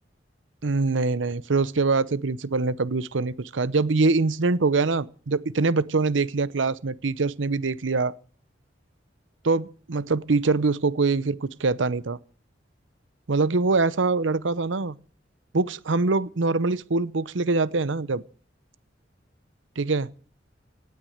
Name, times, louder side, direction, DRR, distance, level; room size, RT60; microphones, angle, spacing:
voice 1, 0.6-8.1 9.4-12.2 13.3-14.9 15.5-18.2 19.8-20.1, right 3 dB, 85° right, 0.8 m, -24 dB
18.0 x 9.5 x 6.6 m
head